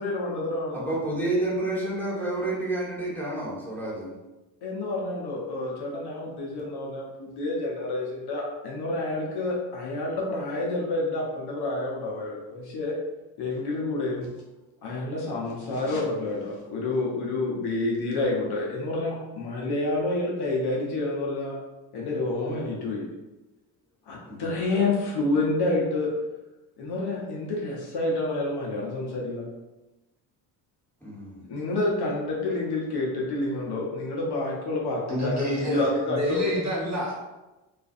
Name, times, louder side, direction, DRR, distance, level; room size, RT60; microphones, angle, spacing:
voice 1, 0.0-0.9 4.6-12.9 13.4-14.3 14.8-21.5 21.9-23.0 24.1-26.1 26.8-29.5 31.5-36.6, left 2 dB, 55° left, -3 dB, 0.8 m, -28 dB
voice 2, 0.7-4.1 24.2-24.5 31.0-31.4, right 2 dB, 5° left, -6 dB, 1.3 m, -29 dB
voice 3, 35.1-37.3, equal, 35° right, -4 dB, 0.9 m, -29 dB
2.4 x 2.3 x 2.5 m, 1.1 s
supercardioid pair, 60°, 49 cm